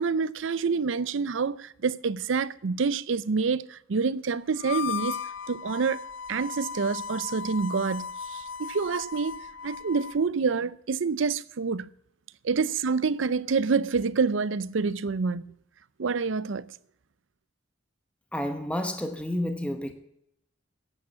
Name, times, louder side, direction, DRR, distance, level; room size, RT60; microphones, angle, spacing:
voice 1, 0.0-5.2 5.5-6.0 6.3-9.4 9.6-11.9 12.4-15.5 16.0-16.7, right 5 dB, 75° right, 0.5 m, -27 dB
Harmonica, 4.6-10.2, left 6 dB, 70° left, 0.4 m, -36 dB
voice 2, 18.3-19.9, left 1 dB, 5° left, 1.0 m, -30 dB
10.5 x 8.7 x 8.5 m
head